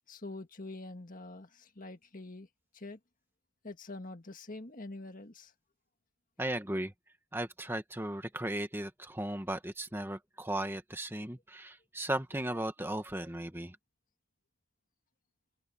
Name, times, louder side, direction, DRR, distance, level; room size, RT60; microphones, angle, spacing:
voice 1, 0.1-2.5 2.7-3.0 3.6-5.5, left 2 dB, 40° left, 1.8 m, -45 dB
voice 2, 6.4-6.9 7.3-13.8, right 1 dB, 10° right, 1.6 m, -36 dB
open air
head